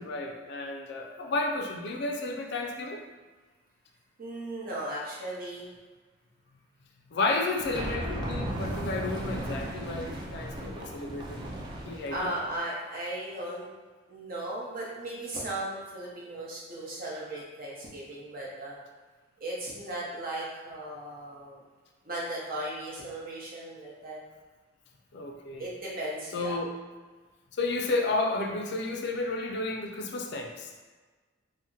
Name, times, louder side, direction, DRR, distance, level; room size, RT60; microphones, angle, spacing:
voice 1, 0.0-3.0 7.1-11.4 11.8-12.3 25.1-25.7 26.3-26.7 27.5-30.7, left 2 dB, 60° left, 2 dB, 0.4 m, -32 dB
voice 2, 4.2-5.7 12.1-13.7 14.1-18.8 19.4-21.6 22.0-24.2 25.6-26.6, right 1 dB, 50° right, -5 dB, 0.8 m, -36 dB
Rumbling Rocky sound, 7.6-12.6, right 1 dB, 25° right, 0.4 m, -36 dB
2.7 x 2.1 x 3.7 m, 1.4 s
head